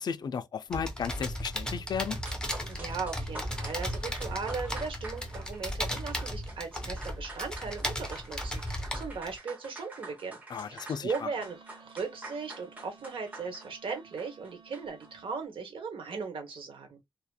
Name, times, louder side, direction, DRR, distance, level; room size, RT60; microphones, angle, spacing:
voice 1, 0.0-2.2 10.5-11.3, left 6 dB, 55° left, 0.3 m, -34 dB
sound 1, 0.7-9.4, equal, 10° left, 0.6 m, -36 dB
sound 2, 2.1-15.1, right 2 dB, 20° right, 0.8 m, -47 dB
voice 2, 2.7-10.4 10.7-17.0, right 5 dB, 90° right, 0.9 m, -38 dB
Wind instrument woodwind instrument, 11.3-15.4, right 5 dB, 55° right, 0.8 m, -56 dB
2.8 x 2.4 x 2.2 m
wide cardioid pair, 180°, 9 cm